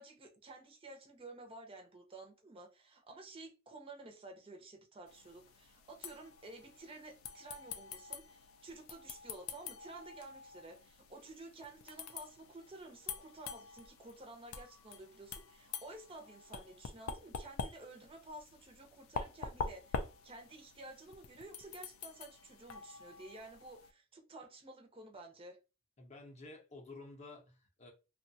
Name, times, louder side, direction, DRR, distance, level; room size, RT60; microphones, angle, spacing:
voice 1, 0.0-25.6, right 2 dB, 25° right, 0.5 m, -52 dB
sound 1, 5.1-23.9, left 5 dB, 85° left, 0.4 m, -46 dB
voice 2, 26.0-27.9, left 2 dB, 35° left, 0.6 m, -52 dB
2.6 x 2.1 x 2.6 m
head